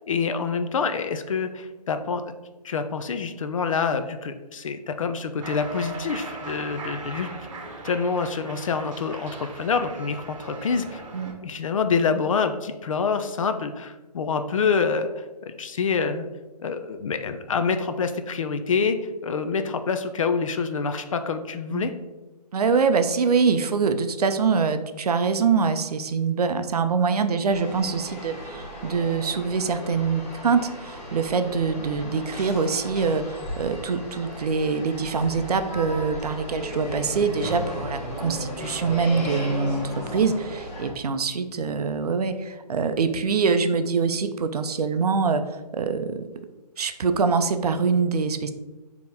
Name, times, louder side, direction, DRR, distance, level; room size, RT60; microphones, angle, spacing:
voice 1, 0.1-2.3 2.6-7.3 7.8-11.0 11.4-16.3 16.6-19.0 19.2-21.9, left 5 dB, 50° left, 8 dB, 0.4 m, -26 dB
Cheering, 5.4-11.3, right 2 dB, 50° right, 1.0 m, -38 dB
voice 2, 22.5-39.8 40.1-45.4 45.7-46.3 46.8-48.5, right 5 dB, 65° right, 9 dB, 0.4 m, -24 dB
sound 1, 27.5-40.9, equal, 25° left, 1.0 m, -35 dB
4.0 x 2.9 x 3.4 m, 1.1 s
figure-of-eight pair, 145°, 21 cm